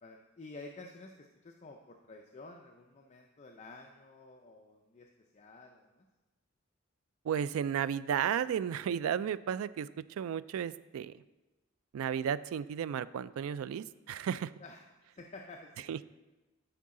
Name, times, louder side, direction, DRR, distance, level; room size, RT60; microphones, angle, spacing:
voice 1, 0.0-6.0 14.6-14.8 15.1-15.9, left 2 dB, 35° left, 2 dB, 0.5 m, -51 dB
voice 2, 7.2-11.2 11.9-14.5 15.9-16.0, right 8 dB, 90° right, 17 dB, 0.3 m, -33 dB
12.5 x 4.7 x 3.7 m, 1.1 s
head